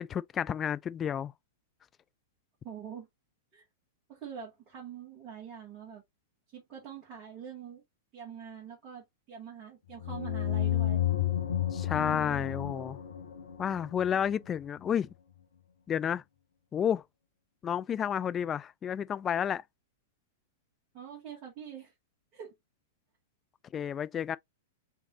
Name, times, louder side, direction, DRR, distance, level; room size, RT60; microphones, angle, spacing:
voice 1, 0.0-1.3 11.7-13.0 13.6-15.1 15.9-16.2 16.7-17.0 17.6-19.6 23.7-24.4, left 8 dB, 25° left, 0.3 m, -31 dB
voice 2, 2.6-3.1 3.5-3.6 4.1-6.0 6.5-7.8 8.1-11.0 11.9-12.4 20.9-21.9 22.3-22.5, right 8 dB, 35° right, 2.0 m, -44 dB
sound 1, 10.0-14.5, left 11 dB, 70° left, 1.0 m, -32 dB
4.1 x 3.5 x 2.8 m
figure-of-eight pair, 100°, 0 cm